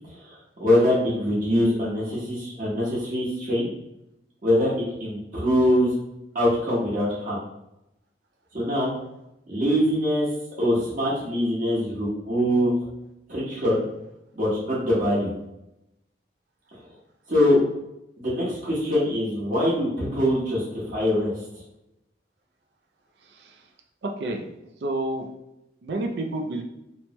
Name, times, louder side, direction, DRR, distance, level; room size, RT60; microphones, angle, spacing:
voice 1, 0.1-3.7 4.4-5.9 6.3-7.4 8.5-8.9 9.5-10.3 10.6-12.7 13.3-13.8 14.3-15.3 17.3-17.6 18.2-21.3, equal, 50° right, -6 dB, 1.2 m, -23 dB
voice 2, 24.0-24.4 24.8-25.3 25.8-26.6, right 2 dB, 70° right, 3 dB, 0.4 m, -29 dB
3.0 x 2.1 x 2.9 m, 0.87 s
head